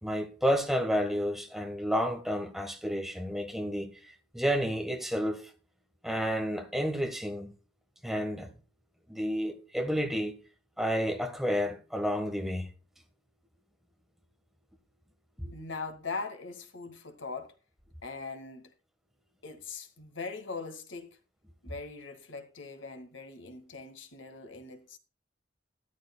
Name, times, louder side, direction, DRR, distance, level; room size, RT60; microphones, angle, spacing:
voice 1, 0.0-5.5 6.0-7.5 8.0-8.5 9.1-10.4 10.8-12.7 15.4-15.5, equal, ahead, 1.4 m, -31 dB
voice 2, 15.5-17.5 18.0-18.7 19.4-21.2 21.6-25.0, left 4 dB, 80° left, 2.0 m, -41 dB
13.0 x 12.5 x 2.3 m
head